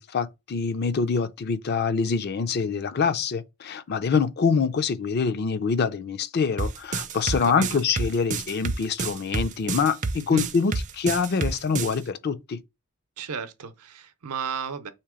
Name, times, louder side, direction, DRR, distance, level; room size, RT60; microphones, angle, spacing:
voice 1, 0.0-12.6, left 5 dB, 45° left, 0.4 m, -25 dB
sound 1, 6.6-12.0, right 4 dB, 35° right, 0.4 m, -28 dB
voice 2, 7.4-7.8 10.3-10.5 13.2-14.9, right 6 dB, 85° right, 0.6 m, -34 dB
3.6 x 2.9 x 4.8 m
head